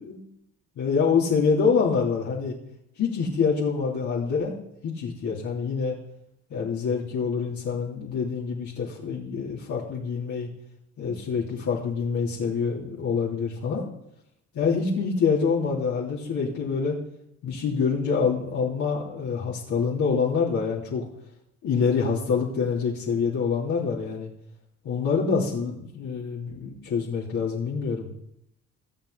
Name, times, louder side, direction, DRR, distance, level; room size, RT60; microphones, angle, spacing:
voice 1, 0.8-2.6 3.0-4.5 4.8-6.0 6.5-10.5 11.0-13.9 14.5-17.0 17.4-21.0 21.6-24.3 24.8-28.1, left 5 dB, 75° left, -5 dB, 3.2 m, -26 dB
23.5 x 8.1 x 4.0 m, 0.77 s
cardioid pair, 90°, 30 cm